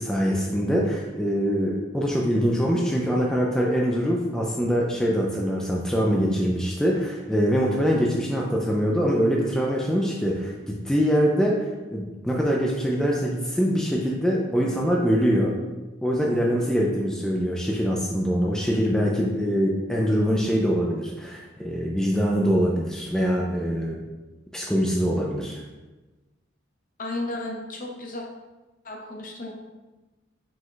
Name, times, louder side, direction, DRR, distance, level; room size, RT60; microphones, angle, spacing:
voice 1, 0.0-15.6 16.0-24.0 24.5-25.6, equal, 5° left, -3 dB, 0.3 m, -24 dB
voice 2, 27.0-28.2 28.8-29.5, left 2 dB, 45° left, 0 dB, 0.7 m, -33 dB
5.0 x 2.2 x 3.8 m, 1.2 s
head